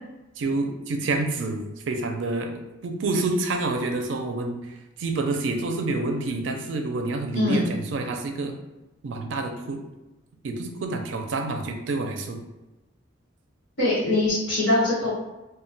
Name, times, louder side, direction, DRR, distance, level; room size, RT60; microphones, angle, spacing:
voice 1, 0.4-2.5 2.8-4.6 5.0-8.5 9.0-9.8 10.4-12.4, right 2 dB, 70° right, 4 dB, 0.4 m, -28 dB
voice 2, 7.3-7.7 13.8-15.1, left 2 dB, 75° left, -8 dB, 1.1 m, -22 dB
2.1 x 2.1 x 3.8 m, 1.0 s
head